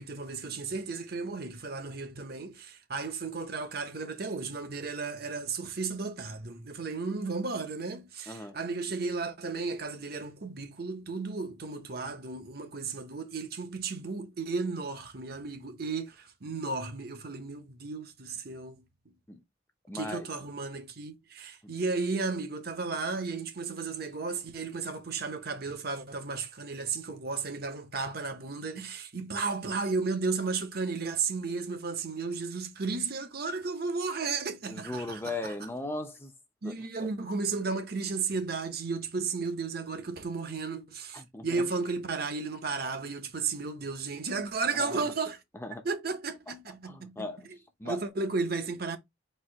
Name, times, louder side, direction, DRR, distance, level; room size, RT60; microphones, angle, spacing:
voice 1, 0.0-18.9 19.9-35.5 36.6-45.4 45.8-47.3 47.8-49.0, right 4 dB, 50° right, 0.9 m, -34 dB
voice 2, 8.3-8.6 19.3-19.4 19.9-20.3 21.6-21.7 34.7-36.3 36.6-36.7 37.0-37.1 41.1-41.7 44.7-45.0 45.5-45.9 46.5-46.6 46.8-47.5 47.8-48.0, left 2 dB, 10° left, 0.7 m, -38 dB
4.3 x 2.8 x 4.0 m
head